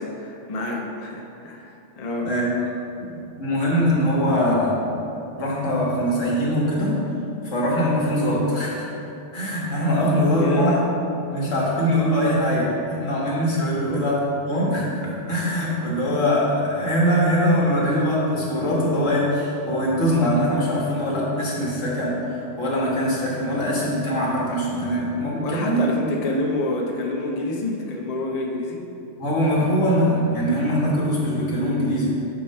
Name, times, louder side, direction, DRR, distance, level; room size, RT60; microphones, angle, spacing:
voice 1, 0.0-2.3 4.3-4.6 10.4-10.8 13.8-14.0 25.4-28.8, left 2 dB, 40° left, 0 dB, 0.7 m, -28 dB
voice 2, 3.0-4.7 5.4-7.0 7.4-8.9 9.3-10.7 11.3-25.9 29.2-32.1, equal, 80° left, -5 dB, 1.8 m, -22 dB
8.8 x 3.1 x 5.4 m, 2.8 s
omnidirectional pair, 1.3 m